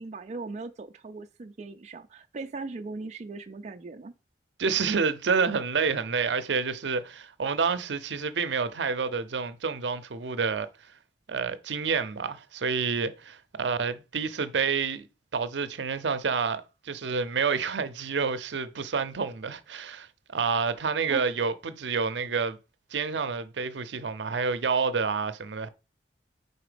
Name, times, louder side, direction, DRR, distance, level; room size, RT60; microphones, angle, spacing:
voice 1, 0.0-4.1 21.1-21.2, right 3 dB, 40° right, 0.4 m, -39 dB
voice 2, 4.6-10.7 11.3-15.1 15.3-22.6 22.9-25.7, right 5 dB, 80° right, 0.6 m, -28 dB
4.9 x 4.1 x 5.0 m
head